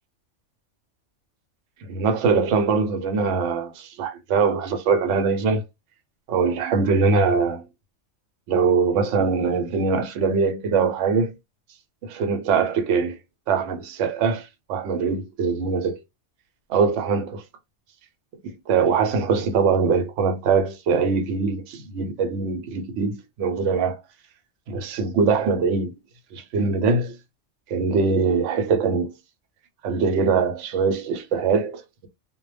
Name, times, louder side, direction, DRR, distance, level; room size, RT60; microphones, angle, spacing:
voice 1, 1.8-5.6 6.3-7.7 8.5-11.3 12.0-13.2 13.5-16.0 16.7-17.4 18.4-24.0 24.7-26.0 26.3-27.2 27.7-29.1 29.8-32.1, right 5 dB, 80° right, 0.9 m, -22 dB
2.1 x 2.0 x 3.2 m
omnidirectional pair, 1.2 m